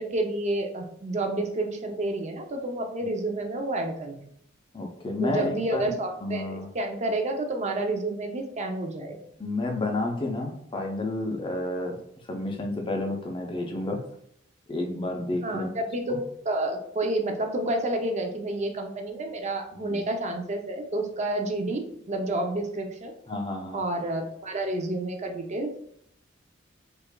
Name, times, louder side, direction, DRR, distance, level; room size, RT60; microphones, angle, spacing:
voice 1, 0.0-4.3 5.2-9.2 15.4-23.1 23.7-25.7, right 2 dB, 35° right, 4 dB, 0.5 m, -29 dB
voice 2, 4.7-5.8 6.2-6.7 9.4-12.0 12.2-14.0 14.7-15.8 16.1-16.2 19.7-20.0 23.3-23.8, left 2 dB, 25° left, 2 dB, 0.5 m, -30 dB
4.6 x 2.5 x 2.2 m, 0.70 s
head